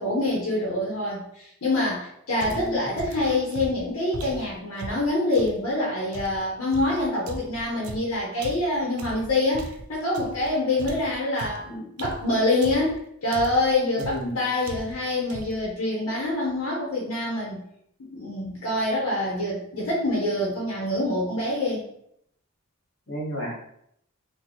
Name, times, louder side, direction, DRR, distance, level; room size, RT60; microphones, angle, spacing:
voice 1, 0.0-17.6 18.0-21.8, left 2 dB, 75° left, -5 dB, 0.9 m, -26 dB
voice 2, 2.4-2.8 14.0-14.4 23.1-23.5, equal, 55° left, -3 dB, 1.3 m, -32 dB
sound 1, 2.4-5.6 6.1-10.5 10.8-13.0 13.3-13.7 14.0-14.3 14.6-15.0 15.3-15.7, right 2 dB, 85° right, 0.5 m, -38 dB
2.9 x 2.2 x 3.9 m, 0.72 s
head